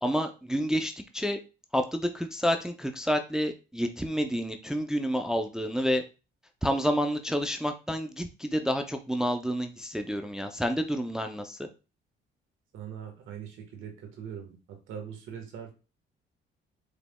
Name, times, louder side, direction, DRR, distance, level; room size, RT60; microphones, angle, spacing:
voice 1, 0.0-1.4 1.7-6.0 6.6-11.7, equal, 5° right, 6 dB, 0.4 m, -29 dB
voice 2, 12.7-14.6 14.9-15.7, right 8 dB, 85° right, 3 dB, 1.4 m, -41 dB
4.9 x 3.3 x 2.2 m, 0.31 s
cardioid pair, 90°, 20 cm